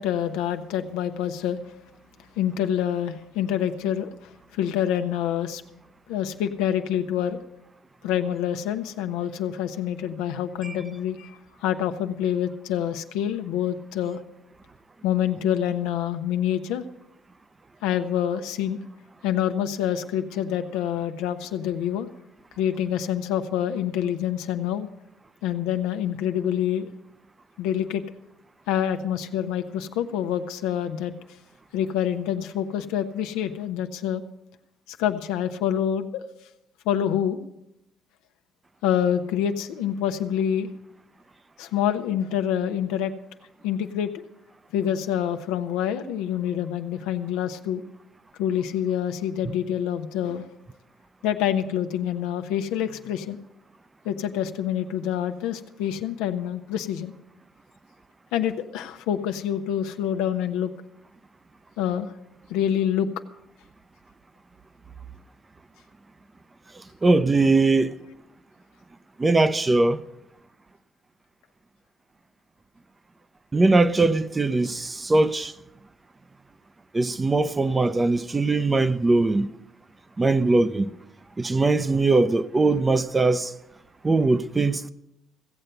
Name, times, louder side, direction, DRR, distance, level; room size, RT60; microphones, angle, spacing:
voice 1, 0.0-1.6 2.4-4.1 4.5-5.6 6.1-7.4 8.0-11.3 11.6-14.2 15.0-16.8 17.8-18.8 19.2-22.1 22.6-24.9 25.4-26.9 27.6-28.0 28.7-31.1 31.7-34.2 34.9-36.2 36.8-37.4 38.8-40.7 41.6-43.1 43.6-44.2 44.7-47.8 48.4-50.5 51.2-53.4 54.0-57.1 58.3-60.7 61.8-62.1 62.5-63.1, left 10 dB, 85° left, 0.8 m, -26 dB
voice 2, 67.0-68.0 69.2-70.0 73.5-75.5 76.9-79.5 80.2-80.9 81.4-83.5 84.0-84.9, right 3 dB, 25° right, 0.6 m, -21 dB
16.0 x 7.7 x 6.8 m
supercardioid pair, 70°, 0 cm